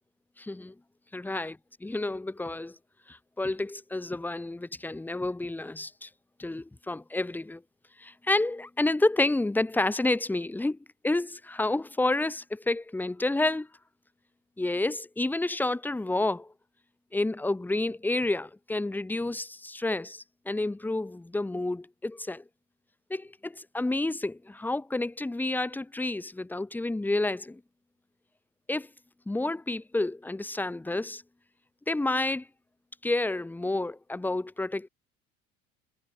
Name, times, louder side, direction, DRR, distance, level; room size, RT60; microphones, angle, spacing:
voice 1, 0.4-0.7 1.1-1.5 1.8-2.8 3.1-6.1 6.4-7.6 8.0-10.8 11.0-13.7 14.6-16.5 17.1-22.4 23.1-27.6 28.7-28.9 29.3-31.2 31.9-32.5 33.0-34.9, left 2 dB, 5° left, 0.8 m, -29 dB
figure-of-eight pair, 70°, 38 cm